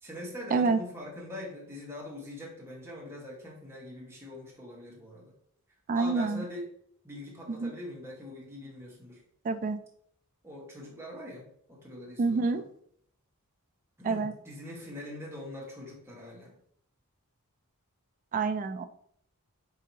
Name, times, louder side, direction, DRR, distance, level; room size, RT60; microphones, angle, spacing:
voice 1, 0.0-5.3 5.9-6.6 7.0-9.2 10.4-12.6 14.0-16.5, left 1 dB, 10° right, -4 dB, 1.5 m, -43 dB
voice 2, 5.9-6.4 7.5-7.7 9.4-9.8 12.2-12.6 14.0-14.3 18.3-18.8, right 4 dB, 35° right, 8 dB, 0.3 m, -27 dB
4.9 x 3.8 x 2.8 m, 0.66 s
head